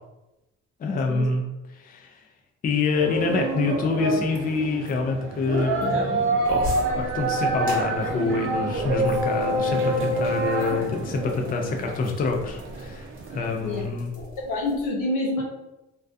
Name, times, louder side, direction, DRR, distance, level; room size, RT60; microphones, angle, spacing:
voice 1, 0.8-1.4 1.7-2.1 2.6-6.4 7.0-14.1, left 4 dB, 30° left, 2 dB, 0.4 m, -26 dB
sound 1, 2.9-13.9, right 2 dB, 45° right, 0.5 m, -27 dB
sound 2, 6.0-11.8, right 3 dB, 75° right, 0.8 m, -42 dB
sound 3, 6.4-14.9, equal, 30° right, 0.9 m, -39 dB
voice 2, 14.2-15.4, left 2 dB, 85° left, -1 dB, 0.7 m, -27 dB
2.3 x 2.2 x 2.5 m, 0.98 s
cardioid pair, 90°, 30 cm